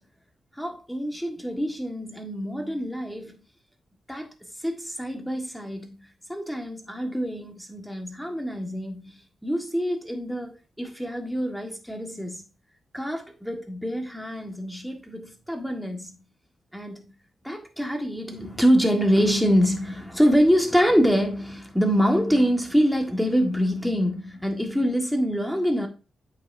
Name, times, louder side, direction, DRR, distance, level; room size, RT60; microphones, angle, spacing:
voice 1, 0.6-3.4 4.1-4.3 4.6-5.9 6.3-9.0 9.4-12.4 12.9-16.2 16.7-17.0 17.4-25.9, equal, ahead, 1.5 m, -25 dB
8.5 x 4.8 x 2.6 m
cardioid pair, 75°, 0 cm